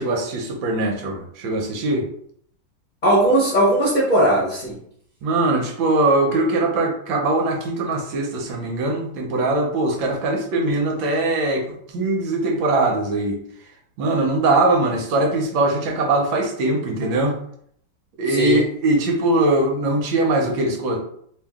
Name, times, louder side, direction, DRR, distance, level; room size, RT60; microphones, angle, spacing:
voice 1, 0.0-2.1 5.2-13.4 14.0-17.4 18.2-21.0, right 2 dB, 75° right, 2 dB, 1.5 m, -21 dB
voice 2, 3.0-4.8 18.3-18.6, right 1 dB, 30° left, -8 dB, 0.9 m, -18 dB
3.0 x 2.7 x 3.5 m, 0.65 s
omnidirectional pair, 2.1 m